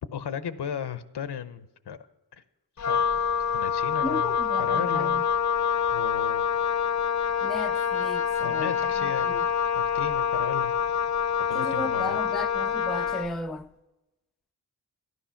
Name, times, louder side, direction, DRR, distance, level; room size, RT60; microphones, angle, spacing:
voice 1, 0.1-2.1 2.3-2.4 2.9-3.0 3.5-5.2 5.9-6.4 8.4-9.4 9.8-10.7 11.5-12.2, left 8 dB, 75° left, 0.8 m, -35 dB
Wind instrument woodwind instrument, 2.8-13.4, left 7 dB, 45° left, 0.6 m, -26 dB
voice 2, 4.0-5.2 7.4-8.7 9.3-9.5 11.5-13.7, left 1 dB, ahead, 0.3 m, -35 dB
13.0 x 11.0 x 5.7 m
wide cardioid pair, 85°, 41 cm